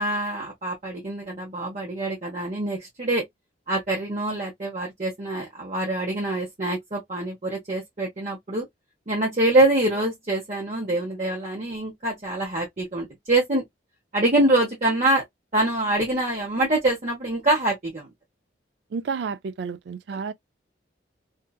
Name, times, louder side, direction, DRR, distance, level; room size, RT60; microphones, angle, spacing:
voice 1, 0.0-3.2 3.7-8.7 9.1-13.6 14.1-15.2 15.5-18.1 20.1-20.2, right 2 dB, 40° right, 0.9 m, -25 dB
voice 2, 18.9-20.3, right 5 dB, 65° right, 0.3 m, -31 dB
2.7 x 2.4 x 2.3 m
head